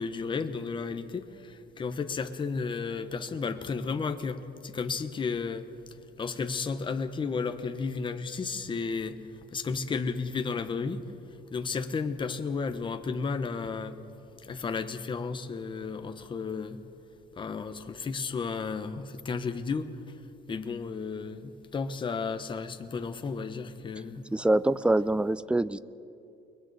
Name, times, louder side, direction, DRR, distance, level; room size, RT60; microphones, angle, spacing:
voice 1, 0.0-5.7 6.2-9.2 9.5-11.0 11.5-14.0 14.4-16.8 17.3-20.2 20.5-24.3, left 5 dB, 25° left, 8 dB, 1.0 m, -33 dB
voice 2, 24.3-25.8, right 2 dB, 5° right, 17 dB, 0.4 m, -25 dB
29.0 x 21.5 x 4.1 m, 2.7 s
cardioid pair, 130°, 18 cm